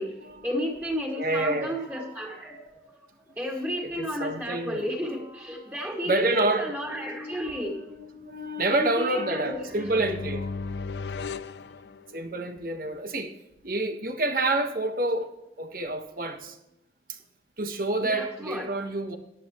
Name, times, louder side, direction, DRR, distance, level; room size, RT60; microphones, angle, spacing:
voice 1, 0.4-3.0 3.4-7.8 8.7-10.2 18.1-18.8, equal, 10° right, -2 dB, 2.1 m, -32 dB
voice 2, 1.2-1.8 3.8-4.8 6.1-10.4 12.1-13.3 13.6-15.3 15.6-16.6 17.1-17.2 17.6-19.2, right 2 dB, 50° right, 6 dB, 1.4 m, -28 dB
sound 1, 9.5-12.5, left 4 dB, 75° left, 0.5 m, -36 dB
14.0 x 11.0 x 3.1 m, 0.90 s
head